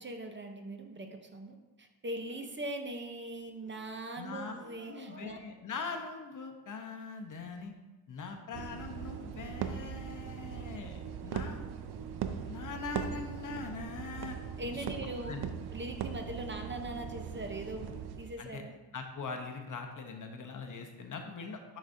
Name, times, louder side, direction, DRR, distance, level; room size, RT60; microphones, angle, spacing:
voice 1, 0.0-5.4 14.6-15.4 15.7-18.7, right 1 dB, 30° right, 5 dB, 0.6 m, -41 dB
voice 2, 4.2-4.5 4.9-7.7 8.1-11.6 12.5-14.4 14.7-15.5 18.4-18.6 18.9-21.8, left 4 dB, 50° left, 4 dB, 0.8 m, -42 dB
sound 1, 8.5-18.3, right 8 dB, 70° right, 0.5 m, -40 dB
9.7 x 4.1 x 2.6 m, 1.2 s
cardioid pair, 100°, 40 cm